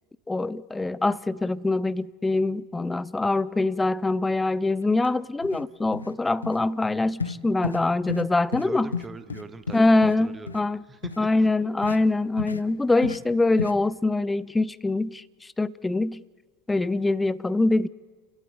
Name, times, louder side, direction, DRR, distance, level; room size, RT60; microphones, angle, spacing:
voice 1, 0.3-9.0 9.7-10.8 11.2-15.2 15.6-16.2 16.7-17.9, left 2 dB, 10° left, 0.6 m, -24 dB
sound 1, 5.0-5.1 5.4-5.6 5.9-6.1 6.4-6.6 7.2-7.4 7.6-7.8 8.1-8.3 8.5-8.7 8.9-10.2 10.5-10.6 11.0-11.2 11.8-12.0 12.4-12.6 13.0-13.2 13.6-13.7, left 5 dB, 80° left, 0.9 m, -32 dB
voice 2, 8.6-10.5 10.9-11.3, right 4 dB, 15° right, 1.5 m, -41 dB
28.5 x 15.5 x 9.8 m
figure-of-eight pair, 80°, 0 cm